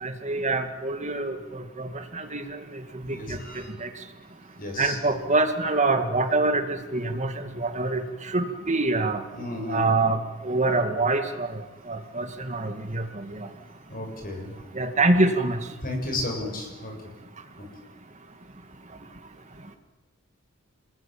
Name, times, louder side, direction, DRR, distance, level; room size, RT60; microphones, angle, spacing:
voice 1, 0.0-2.4 3.0-3.4 3.8-3.9 4.8-8.0 8.3-9.2 9.7-10.2 10.4-11.6 11.9-13.5 14.7-15.6, right 2 dB, 35° right, 6 dB, 2.4 m, -25 dB
voice 2, 3.0-3.7 4.6-5.0 9.3-9.9 13.9-14.5 15.8-16.9 17.6-17.7, left 2 dB, 40° left, 3 dB, 7.2 m, -33 dB
28.0 x 21.0 x 8.9 m, 1.1 s
head